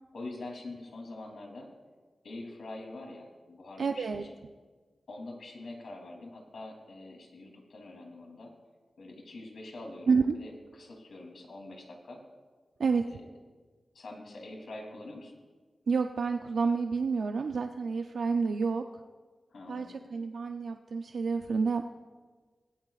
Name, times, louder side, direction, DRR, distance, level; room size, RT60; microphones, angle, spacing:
voice 1, 0.1-1.7 2.2-4.3 5.1-8.5 9.0-10.5 10.8-12.2 13.0-13.2 13.9-15.3 19.5-20.0, left 2 dB, 80° left, 1 dB, 3.1 m, -44 dB
voice 2, 3.8-4.2 10.1-10.4 12.8-13.2 15.9-19.0 19.7-21.9, right 5 dB, 85° right, 5 dB, 0.5 m, -29 dB
19.5 x 17.0 x 2.5 m, 1.4 s
wide cardioid pair, 130°, 0 cm